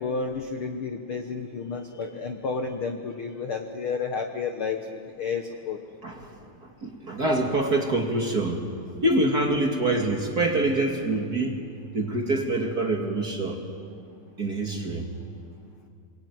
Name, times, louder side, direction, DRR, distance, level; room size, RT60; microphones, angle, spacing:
voice 1, 0.0-5.8, left 5 dB, 75° left, 5 dB, 1.2 m, -31 dB
voice 2, 6.0-8.6 9.0-11.6 11.9-13.6 14.4-15.1, right 2 dB, 35° right, 1 dB, 2.0 m, -26 dB
27.0 x 21.0 x 9.4 m, 2.4 s
omnidirectional pair, 4.1 m